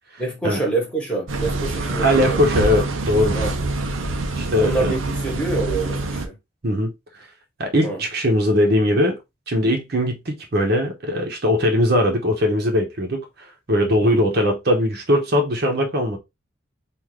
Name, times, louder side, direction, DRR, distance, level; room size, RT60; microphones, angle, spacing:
voice 1, 0.2-2.5 3.3-3.6 4.6-6.4 7.8-8.0 14.0-14.2, right 3 dB, 5° left, 1.2 m, -26 dB
sound 1, 1.3-6.3, right 2 dB, 85° right, 0.6 m, -25 dB
voice 2, 2.0-3.4 4.4-4.9 6.6-6.9 7.6-9.2 9.5-13.3 13.7-16.2, left 1 dB, 50° right, 0.9 m, -20 dB
3.7 x 2.6 x 3.1 m
head